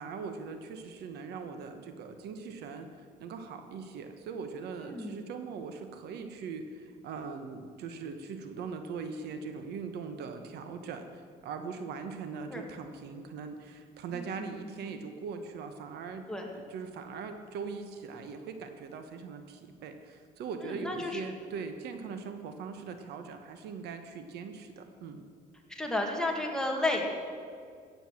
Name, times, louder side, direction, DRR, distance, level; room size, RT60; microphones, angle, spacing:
voice 1, 0.0-2.9 3.2-16.2 16.5-25.2, right 5 dB, 75° right, 7 dB, 1.3 m, -41 dB
voice 2, 4.8-5.2 12.5-12.6 14.1-14.5 14.8-15.0 16.3-16.5 20.6-21.2 25.7-27.1, left 2 dB, 5° left, 0 dB, 2.1 m, -32 dB
15.5 x 7.9 x 7.5 m, 2.1 s
cardioid pair, 110°, 17 cm